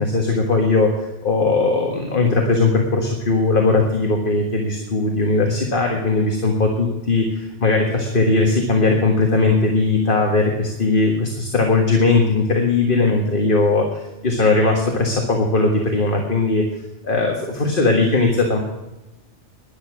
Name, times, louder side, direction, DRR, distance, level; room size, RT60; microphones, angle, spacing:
voice 1, 0.0-16.6 17.0-18.6, left 3 dB, 50° left, 2 dB, 1.7 m, -19 dB
11.5 x 10.5 x 6.2 m, 1.0 s
omnidirectional pair, 1.2 m